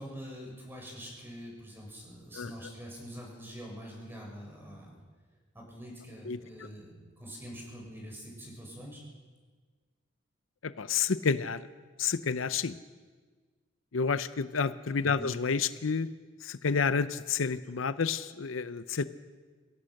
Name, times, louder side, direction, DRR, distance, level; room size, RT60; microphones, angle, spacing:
voice 1, 0.0-4.9 5.5-9.0 15.0-15.3, equal, 10° right, -2 dB, 6.6 m, -45 dB
voice 2, 10.6-11.7 12.0-12.8 13.9-16.1 16.4-19.0, left 5 dB, 85° left, 14 dB, 0.7 m, -29 dB
24.0 x 17.5 x 6.5 m, 1.4 s
head